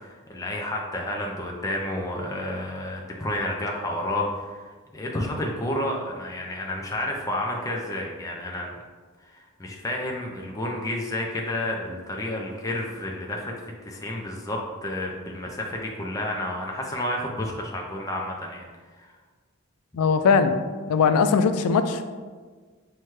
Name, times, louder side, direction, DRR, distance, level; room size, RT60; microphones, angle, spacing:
voice 1, 0.0-8.8 9.2-13.5 13.8-18.6 19.0-19.1, left 1 dB, 15° left, -1 dB, 0.4 m, -30 dB
voice 2, 19.9-20.5 20.9-22.0, left 5 dB, 90° left, 9 dB, 0.3 m, -20 dB
5.7 x 2.2 x 3.1 m, 1.5 s
head